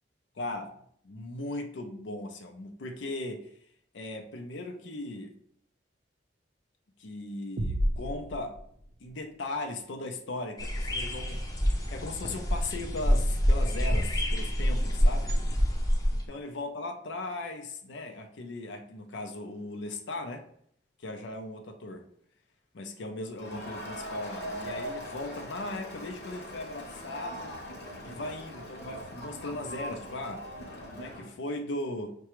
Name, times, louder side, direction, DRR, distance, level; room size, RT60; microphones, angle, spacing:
voice 1, 0.4-0.7 1.0-3.5 3.9-5.3 7.0-8.6 9.0-11.4 11.9-15.4 16.1-20.4 21.0-22.1 22.7-27.5 28.0-30.5 30.9-32.1, left 2 dB, 85° left, 4 dB, 0.5 m, -38 dB
sound 1, 7.6-9.3, equal, 55° right, 0.5 m, -32 dB
sound 2, 10.6-16.3, equal, 20° left, 0.6 m, -27 dB
Crowd, 23.4-31.3, equal, 60° left, 1.0 m, -41 dB
5.7 x 2.2 x 3.0 m, 0.66 s
head